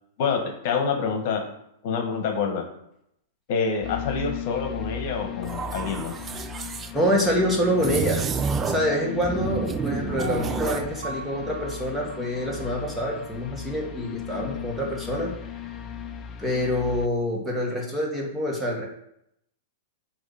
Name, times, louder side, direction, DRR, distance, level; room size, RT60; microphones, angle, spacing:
voice 1, 0.2-1.4 1.8-2.6 3.5-6.1, left 5 dB, 55° left, 4 dB, 1.4 m, -27 dB
sound 1, 3.8-17.1, left 9 dB, 30° left, 0.6 m, -37 dB
sound 2, 5.4-6.9 7.8-8.9 9.2-10.9, right 6 dB, 20° right, 0.4 m, -29 dB
voice 2, 6.9-8.3 8.6-15.3 16.4-18.9, equal, 5° right, -2 dB, 1.9 m, -26 dB
Piano, 10.2-13.3 13.7-13.8, right 6 dB, 65° right, 0.9 m, -40 dB
7.8 x 3.0 x 5.6 m, 0.76 s
hypercardioid pair, 120°, 0 cm